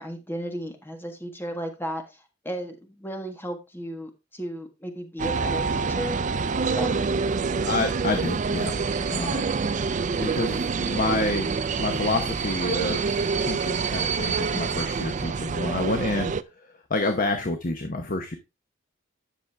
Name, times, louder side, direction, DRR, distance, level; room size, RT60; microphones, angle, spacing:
voice 1, 0.0-6.2 6.7-7.1 9.0-9.1 17.2-17.4, equal, 10° left, 5 dB, 1.5 m, -35 dB
sound 1, 5.2-16.4, right 5 dB, 40° right, 0.4 m, -26 dB
voice 2, 7.7-8.7 9.1-9.5 10.1-11.5 11.8-13.2 13.4-16.3 16.9-18.4, left 2 dB, 45° left, 6 dB, 1.0 m, -28 dB
9.9 x 6.4 x 3.4 m, 0.25 s
head